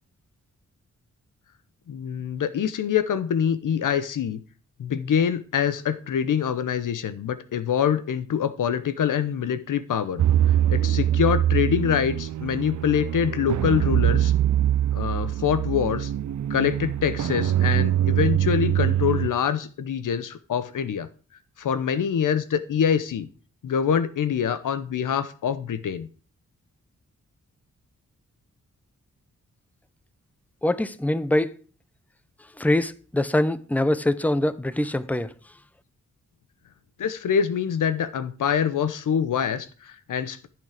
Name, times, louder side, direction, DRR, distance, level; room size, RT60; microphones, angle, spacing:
voice 1, 1.9-4.4 4.8-10.2 10.7-14.3 14.9-16.1 16.5-21.1 21.6-23.3 23.6-26.1 37.0-40.5, left 8 dB, 85° left, 0.9 m, -25 dB
sound 1, 10.2-19.3, right 11 dB, 70° right, 0.6 m, -23 dB
voice 2, 30.6-31.5 32.6-35.3, left 1 dB, 5° left, 0.8 m, -23 dB
14.0 x 6.3 x 5.0 m
cardioid pair, 70°, 31 cm